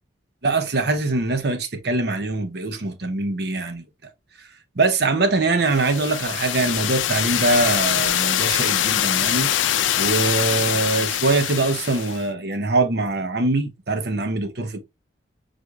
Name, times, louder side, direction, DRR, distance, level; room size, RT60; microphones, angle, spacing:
voice 1, 0.4-3.8 4.8-9.5 10.0-14.8, right 3 dB, 60° right, 0.8 m, -23 dB
sound 1, 5.7-12.2, left 11 dB, 85° left, 0.4 m, -23 dB
4.8 x 4.0 x 2.3 m
head